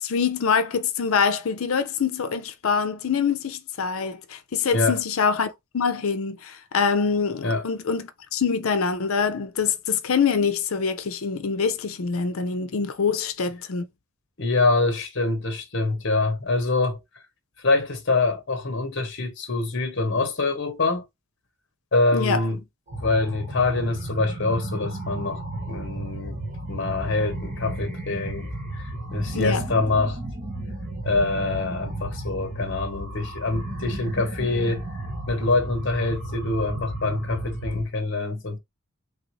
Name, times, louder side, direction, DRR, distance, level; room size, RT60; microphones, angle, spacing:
voice 1, 0.0-5.5 5.7-13.8 22.1-22.4 29.3-29.7, left 6 dB, 75° left, 0.5 m, -25 dB
voice 2, 14.4-17.0 17.6-21.0 21.9-22.6 23.0-25.4 25.7-26.4 26.7-30.2 31.0-34.8 35.3-38.6, left 3 dB, 55° left, 0.9 m, -25 dB
sound 1, 22.9-37.9, right 1 dB, 35° right, 0.9 m, -33 dB
3.4 x 2.5 x 3.0 m
head